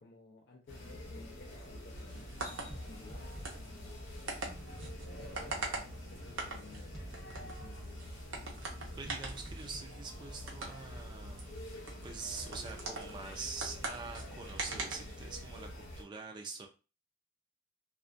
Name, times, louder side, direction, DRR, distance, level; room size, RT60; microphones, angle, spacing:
voice 1, 0.0-4.1 5.0-7.0 7.4-8.0, left 3 dB, 60° left, 0.5 m, -57 dB
sound 1, 0.7-16.0, left 1 dB, 90° left, 0.9 m, -47 dB
sound 2, 2.1-15.7, right 3 dB, 90° right, 0.7 m, -44 dB
sound 3, 2.7-11.1, equal, ahead, 0.7 m, -52 dB
voice 2, 9.0-11.6 12.0-16.7, right 4 dB, 25° right, 0.3 m, -45 dB
2.4 x 2.1 x 2.5 m
head